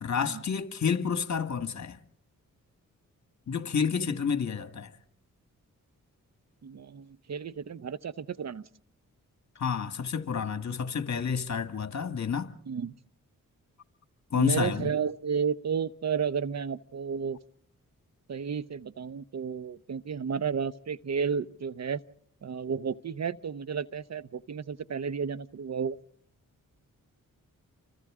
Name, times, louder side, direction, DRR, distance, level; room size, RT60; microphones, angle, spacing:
voice 1, 0.0-2.0 3.5-4.9 9.6-12.5 14.3-14.9, left 6 dB, 55° left, 1.6 m, -29 dB
voice 2, 6.6-8.7 12.7-12.9 14.3-17.4 18.3-22.0 22.4-26.0, right 6 dB, 50° right, 0.8 m, -32 dB
30.0 x 24.5 x 3.7 m
cardioid pair, 60°, 33 cm